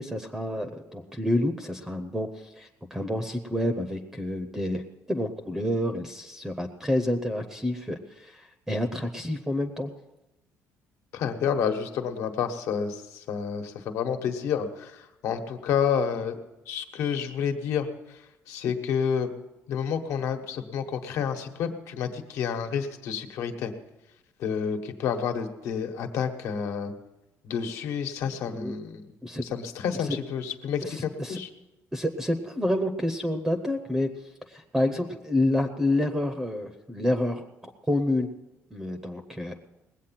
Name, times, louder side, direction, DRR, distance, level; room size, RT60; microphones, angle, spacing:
voice 1, 0.0-9.9 28.4-28.7 29.2-29.4 30.0-30.2 30.8-31.4 31.9-34.1 34.5-38.3 38.7-39.6, left 1 dB, 5° right, 7 dB, 0.6 m, -29 dB
voice 2, 11.1-16.4 16.7-19.3 19.7-23.7 24.4-26.9 27.4-29.1 29.4-31.5, left 7 dB, 65° left, 6 dB, 1.3 m, -29 dB
20.0 x 8.3 x 5.8 m, 0.97 s
cardioid pair, 180°, 5 cm